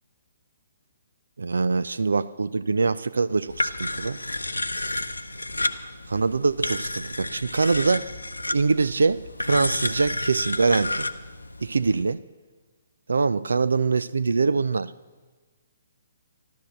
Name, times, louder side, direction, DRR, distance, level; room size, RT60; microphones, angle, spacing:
voice 1, 1.4-4.2 6.1-8.1 8.5-11.1 11.6-12.2 13.1-14.9, right 4 dB, 65° right, 0.4 m, -23 dB
sound 1, 3.5-12.0, left 2 dB, 80° left, 0.7 m, -31 dB
13.0 x 12.0 x 7.8 m
figure-of-eight pair, 130°, 0 cm